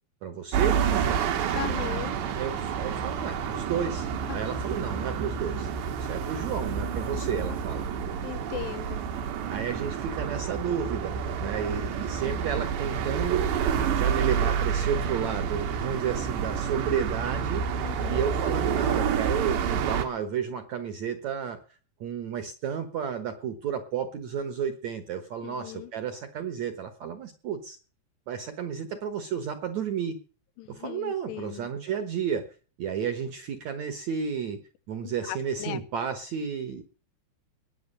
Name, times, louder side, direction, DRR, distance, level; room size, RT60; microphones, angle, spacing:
voice 1, 0.2-1.3 2.3-5.7 6.0-7.9 9.5-21.6 22.0-27.8 28.3-30.2 30.7-32.5 32.8-34.6 34.9-36.8, right 7 dB, 65° right, 9 dB, 1.9 m, -32 dB
sound 1, 0.5-20.1, right 7 dB, 85° right, 3.9 m, -29 dB
voice 2, 1.5-2.2 4.3-4.4 8.2-9.0 17.8-18.3 25.4-25.9 30.6-31.7 35.0-35.8, left 14 dB, 80° left, 13 dB, 3.1 m, -38 dB
20.0 x 8.2 x 6.7 m, 0.38 s
omnidirectional pair, 4.9 m